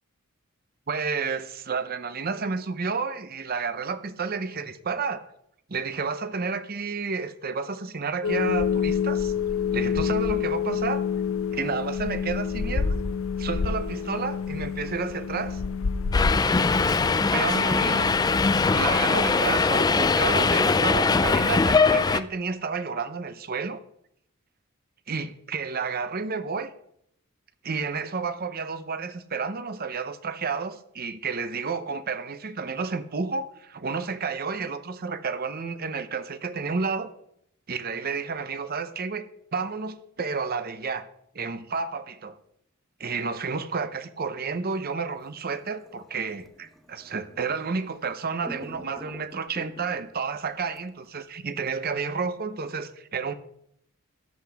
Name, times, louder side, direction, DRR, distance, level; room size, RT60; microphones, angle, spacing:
voice 1, 0.9-5.3 5.7-9.3 9.7-11.0 11.5-13.0 13.4-15.6 17.2-18.2 18.7-23.8 25.1-26.7 27.6-37.1 37.7-41.1 41.3-42.4 43.0-53.3, right 5 dB, 45° right, 0.7 m, -31 dB
sound 1, 8.2-19.4, left 6 dB, 70° left, 0.6 m, -28 dB
Subway metro underground, 16.1-22.2, left 4 dB, 20° left, 0.3 m, -21 dB
sound 2, 45.1-48.1 48.4-50.2 50.8-50.9, equal, ahead, 0.9 m, -46 dB
13.5 x 10.0 x 3.5 m
head